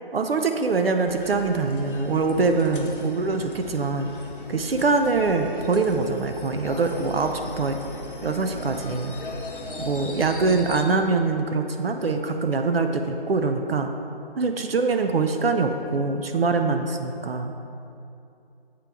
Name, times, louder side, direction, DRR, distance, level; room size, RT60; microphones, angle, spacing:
voice 1, 0.1-4.1 4.5-7.8 8.2-9.1 9.8-13.9 14.4-17.5, right 4 dB, 75° right, 6 dB, 0.5 m, -24 dB
sound 1, 1.1-10.8, left 2 dB, 60° left, 0.8 m, -38 dB
7.6 x 4.6 x 3.4 m, 2.7 s
figure-of-eight pair, 170°, 30 cm